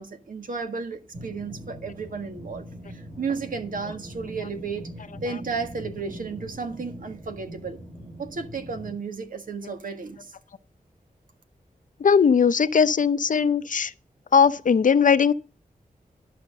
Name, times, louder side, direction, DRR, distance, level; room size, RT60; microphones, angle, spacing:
voice 1, 0.0-2.6 2.9-4.9 5.2-7.8 8.2-10.3, right 4 dB, 70° right, 1.6 m, -33 dB
sound 1, 1.1-8.9, equal, 40° right, 3.3 m, -41 dB
voice 2, 12.0-13.9 14.3-15.3, left 6 dB, 65° left, 0.7 m, -19 dB
11.5 x 5.8 x 6.5 m
wide cardioid pair, 120°, 14 cm